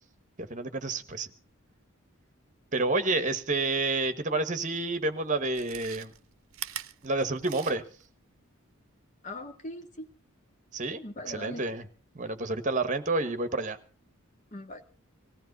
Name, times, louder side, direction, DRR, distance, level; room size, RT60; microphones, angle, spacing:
voice 1, 0.4-1.3 2.7-6.1 7.0-7.8 10.7-11.8 12.1-13.8, right 3 dB, 35° right, 10 dB, 1.2 m, -29 dB
Chewing mastication, 4.6-4.7 5.4-8.1 8.4-8.5, right 12 dB, 70° right, 0.7 m, -41 dB
voice 2, 9.2-10.1 11.0-11.6 14.5-14.9, left 1 dB, 35° left, 5 dB, 1.7 m, -40 dB
19.5 x 15.5 x 4.0 m, 0.38 s
head